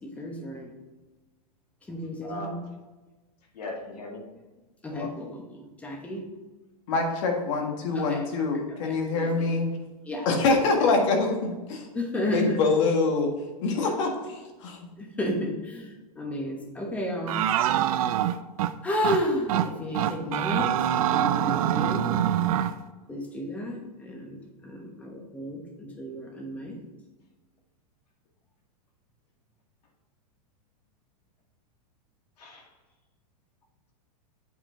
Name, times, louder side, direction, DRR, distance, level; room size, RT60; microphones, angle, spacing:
voice 1, 0.0-0.7 1.9-2.6 4.8-6.2 7.9-8.3 8.5-9.5 10.0-10.6 11.9-12.6 15.0-17.4 18.8-22.2 23.1-26.8, left 1 dB, 5° left, 1 dB, 1.1 m, -32 dB
voice 2, 2.2-2.6 3.5-4.2 4.9-5.1 32.4-32.7, left 2 dB, 80° left, 0 dB, 2.1 m, -38 dB
voice 3, 6.9-9.7 10.3-11.9 12.3-13.3 13.6-14.8, left 3 dB, 50° left, 2 dB, 1.7 m, -25 dB
sound 1, 17.3-18.7 19.0-19.2 19.5-19.7 19.9-22.7, right 11 dB, 60° right, 0.5 m, -24 dB
8.2 x 4.6 x 3.8 m, 1.2 s
supercardioid pair, 150°, 20 cm